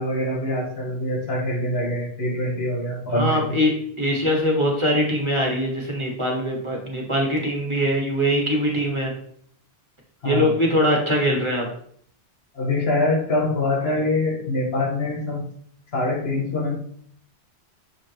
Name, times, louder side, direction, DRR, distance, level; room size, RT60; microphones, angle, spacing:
voice 1, 0.0-3.6 10.2-10.5 12.5-15.4 15.9-16.8, left 1 dB, 70° left, -1 dB, 1.6 m, -24 dB
voice 2, 3.1-9.1 10.2-11.7, equal, 25° right, -2 dB, 1.5 m, -22 dB
7.1 x 5.0 x 3.0 m, 0.62 s
omnidirectional pair, 1.1 m